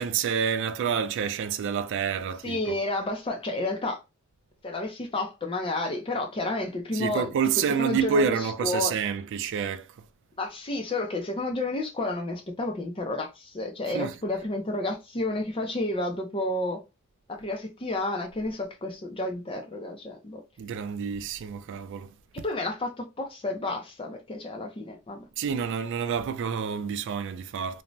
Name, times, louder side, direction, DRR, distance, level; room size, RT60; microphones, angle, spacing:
voice 1, 0.0-2.6 6.9-9.9 13.9-14.1 20.6-22.1 25.4-27.8, right 6 dB, 55° right, 0.3 m, -28 dB
voice 2, 2.4-4.0 4.6-7.3 7.8-8.9 10.4-16.8 17.3-20.4 22.4-25.2, left 2 dB, 25° left, 0.5 m, -31 dB
2.6 x 2.1 x 3.0 m
head